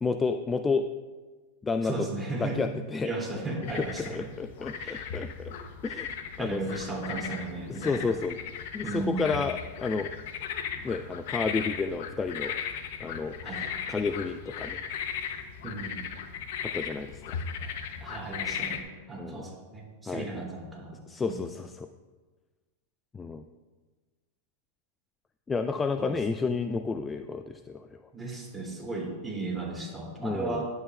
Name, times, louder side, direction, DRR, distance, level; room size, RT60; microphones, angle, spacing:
voice 1, 0.0-0.9 1.6-2.1 2.4-3.1 3.6-5.5 5.8-6.1 6.4-6.6 7.7-8.4 8.7-10.1 10.8-12.5 13.0-14.8 16.6-17.4 19.2-19.5 20.1-20.5 21.1-21.9 23.1-23.4 25.5-28.0 30.2-30.7, left 4 dB, 15° left, 8 dB, 0.3 m, -31 dB
voice 2, 1.8-2.6 3.0-4.3 4.8-5.1 6.4-8.1 8.8-9.3 13.4-13.7 15.6-16.1 18.0-21.4 26.0-26.1 28.1-30.7, right 3 dB, 10° right, -3 dB, 2.6 m, -35 dB
sound 1, 3.6-18.8, left 7 dB, 65° left, 0.7 m, -37 dB
11.0 x 8.1 x 2.3 m, 1.3 s
hypercardioid pair, 100°, 0 cm